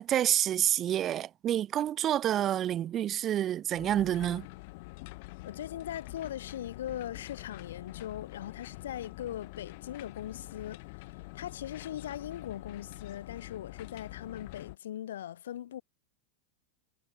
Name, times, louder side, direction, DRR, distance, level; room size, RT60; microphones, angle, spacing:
voice 1, 0.0-4.5, right 11 dB, 35° right, 0.4 m, -28 dB
sound 1, 3.7-14.8, left 25 dB, 60° left, 2.2 m, -46 dB
voice 2, 5.4-10.8 11.1-15.8, left 11 dB, 80° left, 6.8 m, -40 dB
hypercardioid pair, 110°, 0 cm